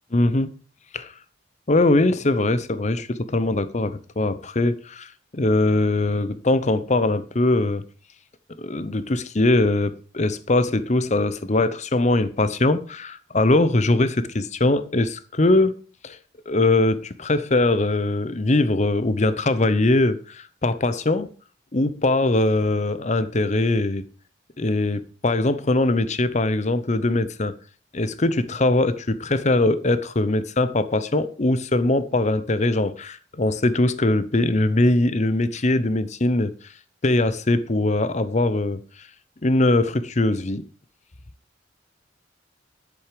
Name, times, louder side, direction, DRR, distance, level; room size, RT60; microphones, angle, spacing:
voice 1, 0.1-0.5 0.9-1.1 1.7-7.8 8.6-15.8 16.0-16.2 16.5-21.3 21.7-24.0 24.6-27.5 27.9-36.5 37.0-38.8 39.4-40.6, left 2 dB, 35° left, 0.8 m, -21 dB
10.5 x 8.0 x 5.1 m
head